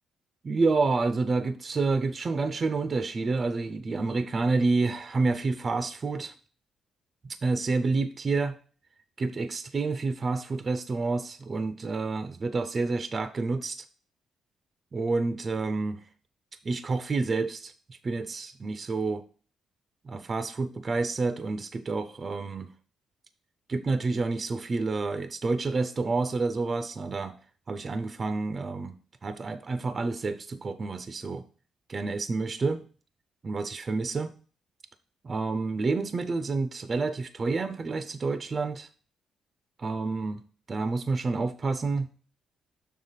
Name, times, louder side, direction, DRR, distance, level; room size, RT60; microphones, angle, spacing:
voice 1, 0.4-6.3 7.2-8.6 9.2-13.8 14.9-16.1 16.6-19.2 20.0-22.7 23.7-27.3 27.7-29.0 29.2-31.4 31.9-32.8 33.4-34.3 35.2-38.9 39.8-40.4 40.7-42.1, right 3 dB, 35° right, 0.5 m, -29 dB
6.6 x 3.4 x 5.6 m
cardioid pair, 90°, 0 cm